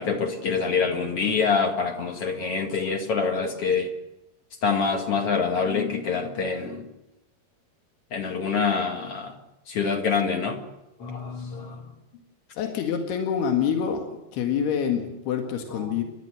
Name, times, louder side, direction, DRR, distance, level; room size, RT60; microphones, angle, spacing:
voice 1, 0.0-3.9 4.6-6.8 8.1-9.3 9.7-10.6 11.0-11.9 15.8-15.9, left 5 dB, 45° left, 4 dB, 2.4 m, -26 dB
voice 2, 12.5-14.1 14.3-16.0, left 7 dB, 80° left, 3 dB, 3.9 m, -26 dB
29.5 x 12.5 x 7.9 m, 0.96 s
omnidirectional pair, 4.5 m